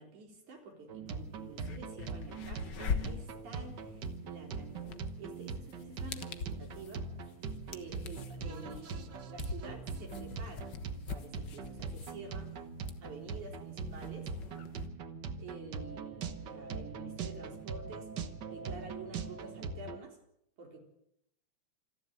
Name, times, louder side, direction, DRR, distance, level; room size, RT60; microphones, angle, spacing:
voice 1, 0.0-7.1 7.7-10.7 11.1-12.6 13.0-14.3 14.6-14.7 15.4-18.2 18.5-20.2 20.6-20.8, right 4 dB, 75° right, 2 dB, 5.4 m, -49 dB
sound 1, 0.9-20.0, right 4 dB, 55° right, 1.3 m, -42 dB
sound 2, 1.1-1.2 1.5-14.9, left 6 dB, 50° left, 1.4 m, -43 dB
27.0 x 11.0 x 9.1 m, 0.76 s
omnidirectional pair, 3.5 m